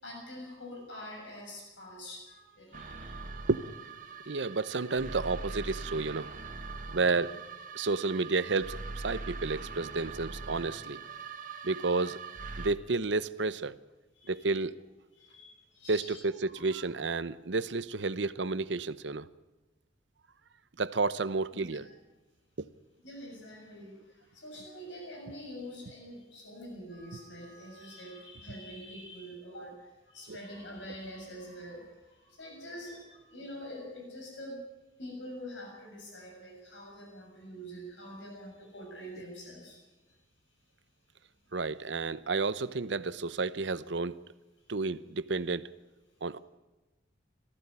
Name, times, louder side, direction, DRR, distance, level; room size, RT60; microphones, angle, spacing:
voice 1, 0.0-3.3 4.2-4.4 11.5-11.6 12.6-12.7 14.1-14.4 15.2-16.2 16.5-16.9 21.5-21.7 23.0-34.6 35.0-39.8, equal, 90° left, 0 dB, 7.2 m, -45 dB
sound 1, 2.7-12.7, right 4 dB, 45° right, 1.6 m, -42 dB
voice 2, 4.3-6.3 6.9-7.4 7.7-11.0 11.6-12.2 12.6-13.8 14.3-14.8 15.9-19.3 20.8-21.9 22.6-22.7 30.3-30.4 41.5-44.2 44.7-45.7 46.2-46.4, right 3 dB, 75° right, 15 dB, 0.8 m, -31 dB
18.5 x 15.0 x 9.7 m, 1.1 s
head